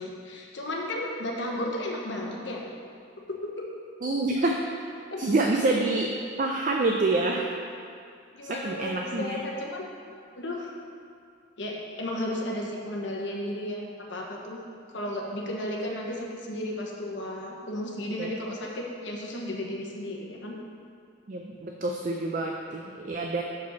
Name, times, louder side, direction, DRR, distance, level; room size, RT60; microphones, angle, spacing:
voice 1, 0.0-2.6 3.3-3.7 5.1-5.4 8.3-9.9 10.4-10.7 11.6-14.6 14.9-20.5, left 1 dB, 60° left, -1 dB, 1.0 m, -34 dB
voice 2, 4.0-4.5 5.2-7.5 8.5-9.4 18.1-18.4 21.3-23.4, right 2 dB, 40° right, 1 dB, 0.4 m, -27 dB
6.1 x 5.0 x 5.6 m, 2.5 s
head